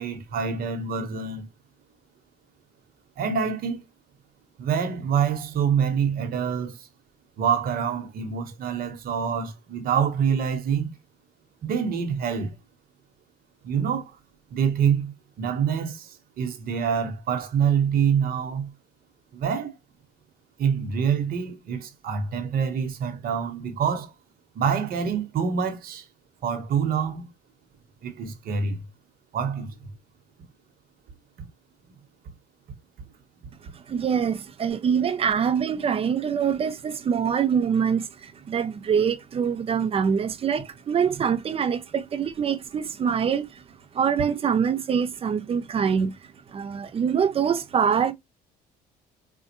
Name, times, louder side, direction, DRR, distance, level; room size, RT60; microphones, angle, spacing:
voice 1, 0.0-1.4 3.2-3.8 4.6-6.8 7.4-10.9 11.6-12.5 13.6-14.2 14.5-15.1 15.4-16.1 16.4-18.7 19.3-19.7 20.6-24.1 24.5-26.0 26.4-27.3 28.0-28.9 29.3-29.7, right 7 dB, 60° right, 1.1 m, -26 dB
voice 2, 33.9-43.6 43.9-46.1 46.5-48.1, right 7 dB, 35° right, 0.5 m, -24 dB
4.3 x 2.3 x 2.9 m
cardioid pair, 110°, 17 cm